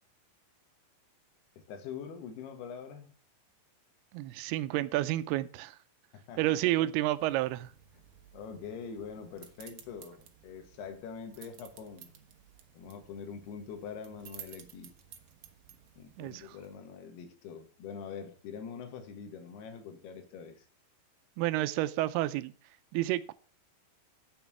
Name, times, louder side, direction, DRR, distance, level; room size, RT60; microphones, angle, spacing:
voice 1, 1.6-3.1 6.1-6.6 8.3-12.1 12.7-14.9 16.0-20.7, left 6 dB, 85° left, 3.4 m, -44 dB
voice 2, 4.1-5.8 6.4-7.7 16.2-16.6 21.4-22.5 22.9-23.3, right 15 dB, 90° right, 2.6 m, -30 dB
sound 1, 7.1-16.8, right 10 dB, 70° right, 1.7 m, -55 dB
9.4 x 7.0 x 5.9 m
omnidirectional pair, 4.5 m